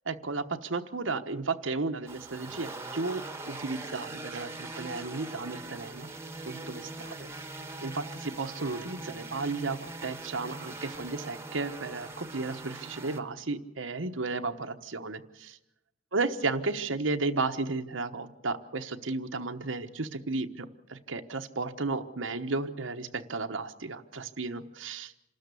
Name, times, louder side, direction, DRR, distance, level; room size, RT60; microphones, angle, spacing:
voice 1, 0.1-6.1 6.5-7.3 7.8-15.6 16.1-25.1, right 3 dB, 85° right, 7 dB, 1.1 m, -34 dB
sound 1, 2.1-13.2, right 2 dB, 15° right, 1.3 m, -42 dB
27.0 x 13.0 x 8.3 m, 0.92 s
head